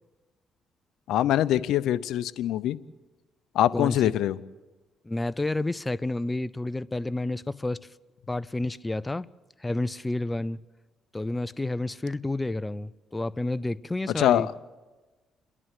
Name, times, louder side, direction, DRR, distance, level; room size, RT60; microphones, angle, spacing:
voice 1, 1.1-2.8 3.5-4.4 14.2-14.5, left 12 dB, 85° left, 0.6 m, -23 dB
voice 2, 3.7-4.1 5.0-7.8 8.3-9.3 9.6-10.6 11.1-14.5, left 2 dB, 15° left, 0.5 m, -30 dB
28.5 x 11.0 x 8.3 m
cardioid pair, 90°, 0 cm